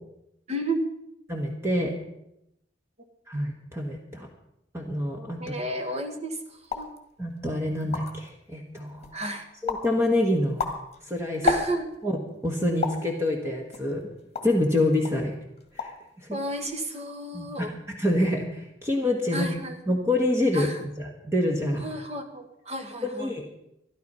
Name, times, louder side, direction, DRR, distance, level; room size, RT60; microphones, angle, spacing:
voice 1, 0.5-0.9 5.4-6.9 9.1-9.4 11.4-11.9 16.3-17.7 19.3-19.8 20.5-20.8 21.8-23.3, right 1 dB, 35° right, 4 dB, 1.7 m, -32 dB
voice 2, 1.3-1.9 3.3-4.3 4.7-5.4 7.2-9.1 9.6-10.6 11.1-11.4 12.0-12.1 12.4-14.0 14.4-15.3 15.7-15.9 16.3-16.4 17.3-19.5 19.9-20.7 21.0-21.8 23.0-23.4, left 1 dB, 15° right, 1 dB, 1.6 m, -26 dB
sound 1, 6.6-7.0 7.5-7.6 7.8-8.3 8.8-9.2 9.7-9.9 10.4-12.0 12.8-13.1 13.7-14.6 15.0-15.2 15.6-16.1 16.3-16.8, left 4 dB, 35° left, 1.8 m, -31 dB
13.0 x 12.0 x 5.6 m, 0.81 s
head